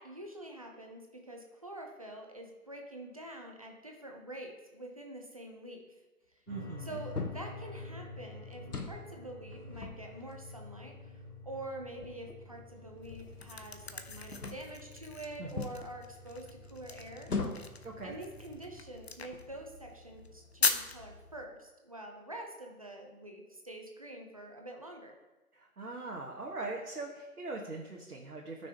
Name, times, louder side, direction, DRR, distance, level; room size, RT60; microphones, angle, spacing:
voice 1, 0.0-6.0 6.3-6.4 6.8-17.3 18.0-25.1, right 1 dB, 25° right, 1 dB, 0.7 m, -46 dB
sound 1, 6.5-18.8, left 2 dB, 15° left, 2.0 m, -49 dB
voice 2, 6.5-7.0 15.4-15.7 17.8-18.2 25.5-28.7, right 3 dB, 75° right, -1 dB, 1.5 m, -41 dB
sound 2, 7.1-7.6 8.5-9.1 9.5-10.6 11.3-11.4 11.9-13.9 14.3-14.8 15.6-15.8 17.2-17.8 18.6-18.7 19.2-19.7, left 3 dB, 85° left, 1.3 m, -40 dB
sound 3, 13.0-21.4, left 4 dB, 45° left, 0.7 m, -39 dB
14.0 x 6.1 x 2.9 m, 1.1 s
figure-of-eight pair, 150°, 44 cm